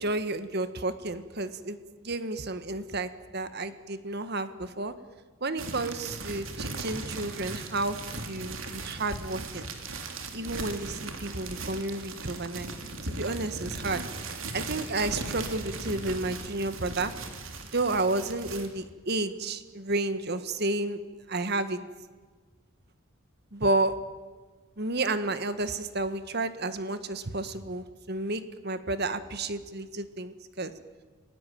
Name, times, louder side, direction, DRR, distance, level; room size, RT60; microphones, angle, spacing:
voice 1, 0.0-4.9 5.4-8.0 8.2-9.7 10.3-12.7 13.0-14.0 14.5-17.1 17.7-21.0 21.3-21.8 23.5-23.9 24.8-30.7, right 2 dB, 50° right, 11 dB, 1.6 m, -31 dB
sound 1, 5.6-18.7, right 3 dB, 70° right, 3.3 m, -38 dB
30.0 x 18.5 x 9.3 m, 1.4 s
head